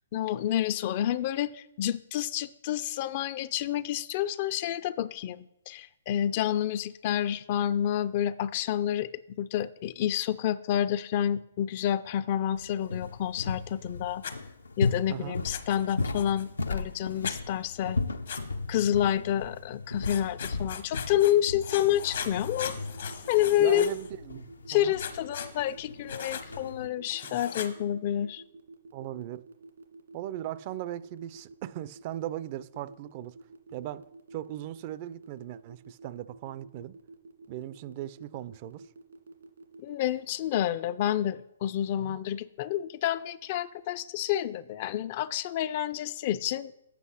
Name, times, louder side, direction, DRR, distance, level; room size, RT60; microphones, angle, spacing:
voice 1, 0.1-9.1 9.4-14.2 14.8-18.0 18.7-22.8 23.3-23.9 24.7-28.4 39.8-46.8, left 11 dB, 40° left, 0.3 m, -29 dB
sound 1, 12.6-26.9, left 3 dB, 90° left, 0.6 m, -36 dB
Writing, 14.2-14.4 15.5-16.4 17.2-17.4 18.3-18.4 20.0-21.3 21.6-24.1 25.0-25.5 26.1-26.5 27.1-27.7, left 7 dB, 65° left, 1.0 m, -39 dB
voice 2, 15.1-15.4 23.6-25.0 28.9-29.5 30.1-33.4 33.7-36.9 37.5-38.9 42.0-42.1, right 13 dB, 40° right, 0.3 m, -38 dB
sound 2, 21.7-40.1, right 2 dB, 85° right, 1.9 m, -49 dB
8.3 x 5.5 x 5.6 m
hypercardioid pair, 135°, 0 cm